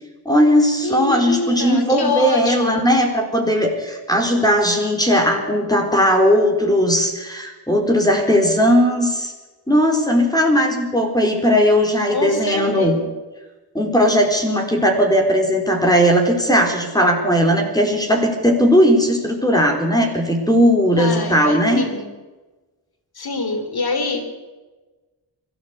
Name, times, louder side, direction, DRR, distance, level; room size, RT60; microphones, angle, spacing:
voice 1, 0.3-9.3 9.7-13.0 13.7-21.8, equal, 10° left, 2 dB, 4.0 m, -17 dB
voice 2, 0.8-2.9 12.1-13.1 20.9-22.1 23.2-24.3, left 3 dB, 60° left, 6 dB, 3.8 m, -25 dB
23.5 x 14.0 x 8.2 m, 1.2 s
wide cardioid pair, 85°, 41 cm